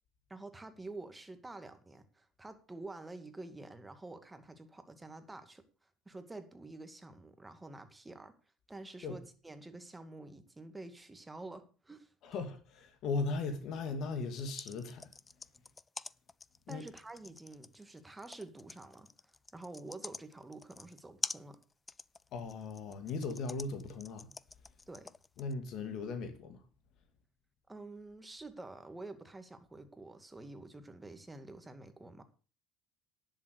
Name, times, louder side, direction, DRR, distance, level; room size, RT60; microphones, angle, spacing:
voice 1, 0.3-5.6 6.1-8.3 8.7-12.1 16.7-19.1 19.5-21.6 24.9-25.1 27.7-32.2, right 2 dB, 15° right, 2.2 m, -48 dB
voice 2, 12.2-15.1 16.7-16.8 22.3-24.3 25.4-26.6, left 4 dB, 60° left, 2.4 m, -38 dB
sound 1, 14.2-25.5, left 3 dB, 20° left, 0.5 m, -45 dB
10.5 x 7.3 x 6.6 m
hypercardioid pair, 70°, 0 cm